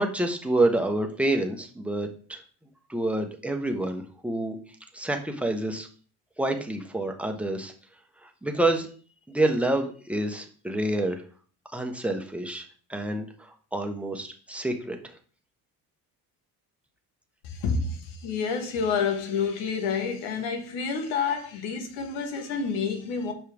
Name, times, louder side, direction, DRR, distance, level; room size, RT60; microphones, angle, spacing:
voice 1, 0.0-2.4 2.9-4.6 4.9-5.9 6.4-7.7 8.4-8.9 9.3-11.2 11.7-15.0, right 1 dB, 5° right, 1.2 m, -28 dB
voice 2, 17.4-23.3, left 5 dB, 80° left, 1.6 m, -29 dB
7.5 x 5.5 x 3.5 m
supercardioid pair, 85°, 43 cm